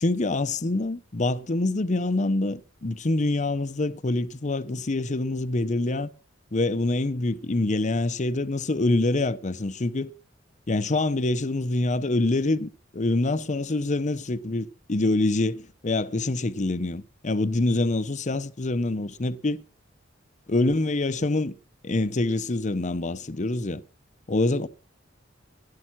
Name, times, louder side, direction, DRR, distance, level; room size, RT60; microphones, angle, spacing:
voice 1, 0.0-6.1 6.5-10.1 10.7-19.6 20.5-21.5 21.8-23.8 24.3-24.7, left 2 dB, 40° left, 0.8 m, -25 dB
15.5 x 11.5 x 5.9 m
head